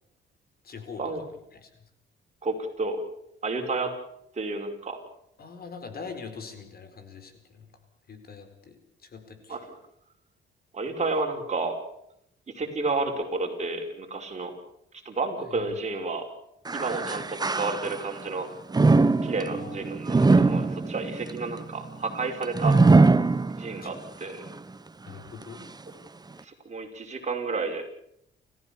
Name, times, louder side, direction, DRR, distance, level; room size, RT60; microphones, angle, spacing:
voice 1, 0.6-1.3 1.5-1.8 5.4-7.7 8.1-9.6 15.4-15.7 19.4-19.8 23.8-23.9 25.1-25.6, left 5 dB, 50° left, 8 dB, 4.6 m, -43 dB
voice 2, 2.4-3.0 3.4-3.9 4.3-5.0 9.5-9.6 10.7-11.8 12.5-14.5 15.0-16.3 16.7-18.5 19.2-22.8 23.6-24.4 26.4-27.8, right 3 dB, 35° right, 3 dB, 5.5 m, -31 dB
sound 1, 16.6-18.2 18.7-24.0 24.5-24.6 25.4-25.5, right 3 dB, 20° right, 1.2 m, -22 dB
30.0 x 15.0 x 7.1 m, 0.77 s
cardioid pair, 90°, 20 cm